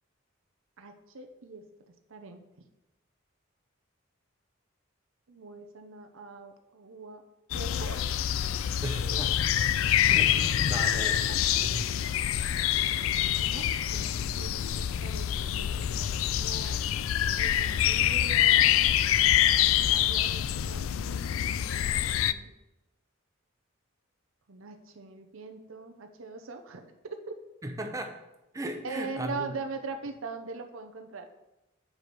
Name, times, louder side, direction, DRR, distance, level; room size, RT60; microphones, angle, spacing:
voice 1, 0.8-1.6 2.1-2.4 5.3-7.2 7.5-8.1 9.0-9.4 11.0-11.9 13.3-16.8 17.4-22.5 24.5-27.4 28.8-31.3, right 4 dB, 80° right, 5 dB, 0.7 m, -42 dB
sound 1, 7.5-22.3, left 11 dB, 80° left, 0.3 m, -26 dB
voice 2, 8.8-9.4 10.0-11.2 11.6-11.9 27.6-28.2 28.5-29.4, right 1 dB, 15° right, 4 dB, 0.8 m, -36 dB
8.2 x 4.8 x 5.3 m, 0.96 s
head